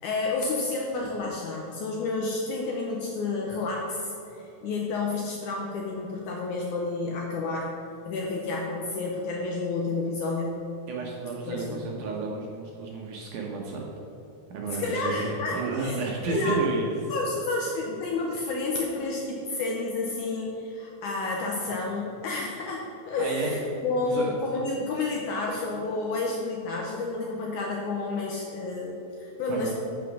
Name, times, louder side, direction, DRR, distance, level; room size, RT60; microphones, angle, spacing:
voice 1, 0.0-7.7 8.1-10.6 11.5-11.8 14.8-16.6 17.1-29.7, left 3 dB, 75° left, 0 dB, 1.8 m, -30 dB
voice 2, 10.9-13.8 14.5-16.9 23.2-23.5 24.0-24.3 29.5-29.7, right 4 dB, 70° right, -1 dB, 2.1 m, -31 dB
8.2 x 6.1 x 6.1 m, 2.8 s
omnidirectional pair, 4.3 m